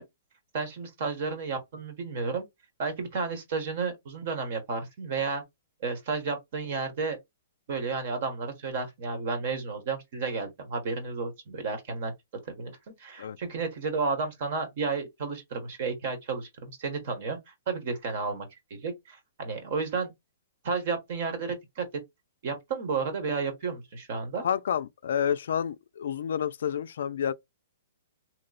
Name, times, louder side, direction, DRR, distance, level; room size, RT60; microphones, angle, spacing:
voice 1, 0.5-2.5 2.8-5.4 5.8-7.2 7.7-12.1 12.4-20.1 20.6-21.8 22.4-24.4, right 4 dB, 45° right, 1.2 m, -32 dB
voice 2, 24.4-27.3, left 8 dB, 70° left, 0.3 m, -29 dB
3.0 x 2.0 x 3.9 m
hypercardioid pair, 165°, 0 cm